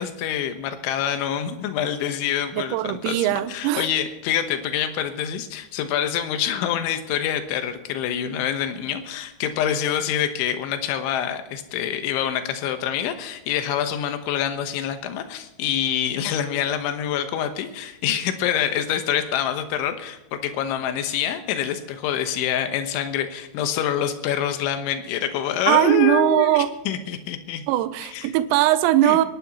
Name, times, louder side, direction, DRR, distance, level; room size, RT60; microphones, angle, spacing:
voice 1, 0.0-27.6 28.1-28.3 29.0-29.2, left 9 dB, 80° left, 7 dB, 3.4 m, -26 dB
voice 2, 2.5-3.9 25.7-26.7 27.7-29.3, right 14 dB, 80° right, 12 dB, 2.9 m, -20 dB
29.5 x 11.5 x 3.0 m, 0.90 s
omnidirectional pair, 5.6 m